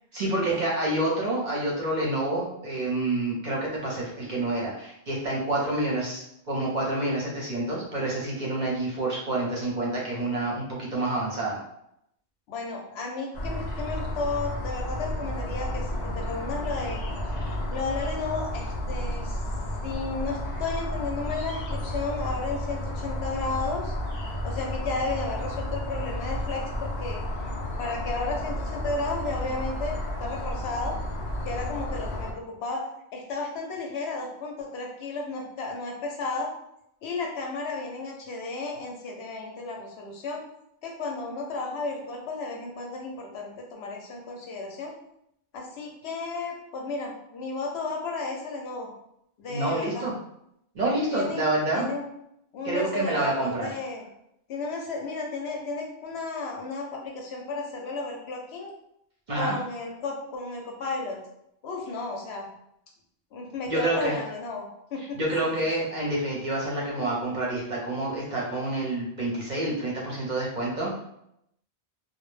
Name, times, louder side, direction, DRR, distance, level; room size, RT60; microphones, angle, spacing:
voice 1, 0.1-6.2 6.5-11.6 49.5-50.1 50.7-51.9 52.6-53.7 59.3-59.6 63.7-64.2 65.1-71.0, right 2 dB, 50° right, -4 dB, 0.7 m, -28 dB
voice 2, 12.5-17.0 17.7-19.4 19.8-23.9 24.4-27.2 27.8-31.0 31.4-36.5 37.0-40.4 40.8-44.9 45.5-48.9 49.4-50.1 51.1-51.4 51.7-52.0 52.5-54.0 54.5-58.7 59.4-61.2 61.6-62.5 63.3-65.5, left 3 dB, 80° left, 0 dB, 0.9 m, -33 dB
sound 1, 13.3-32.3, left 1 dB, 50° left, 0.6 m, -32 dB
2.1 x 2.1 x 3.1 m, 0.77 s
omnidirectional pair, 1.1 m